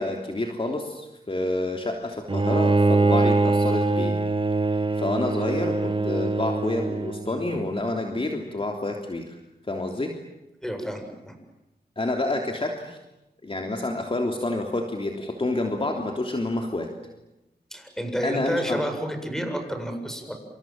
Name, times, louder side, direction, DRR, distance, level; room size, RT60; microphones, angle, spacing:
voice 1, 0.0-4.2 4.7-9.4 9.7-10.1 12.0-13.0 13.4-16.9 18.2-18.9, left 2 dB, 30° left, 2 dB, 3.2 m, -28 dB
Bowed string instrument, 2.3-7.5, right 3 dB, 30° right, 1.3 m, -23 dB
voice 2, 10.6-11.3 17.7-20.3, equal, 5° left, 5 dB, 7.8 m, -30 dB
28.5 x 27.5 x 7.6 m, 0.97 s
cardioid pair, 70°, 17 cm